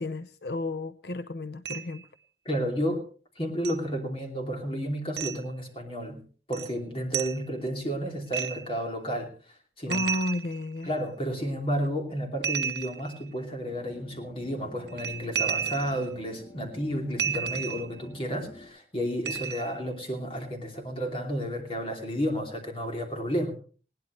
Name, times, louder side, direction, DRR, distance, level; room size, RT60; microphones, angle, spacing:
voice 1, 0.0-2.1 9.9-10.9, left 2 dB, 65° left, 10 dB, 0.6 m, -32 dB
sound 1, 1.7-2.0 3.6-3.8 5.2-5.4 6.5-6.7 7.1-7.4 8.3-8.8 9.9-11.0 12.4-13.3 14.9-16.1 17.2-18.0 19.3-19.8, right 7 dB, 75° right, 0.7 m, -32 dB
voice 2, 2.4-3.0 3.4-9.3 9.8-10.1 10.9-23.5, equal, 30° left, 3 dB, 2.9 m, -32 dB
sound 2, 13.7-18.7, left 1 dB, 80° left, 4.5 m, -48 dB
20.0 x 17.0 x 3.2 m, 0.39 s
head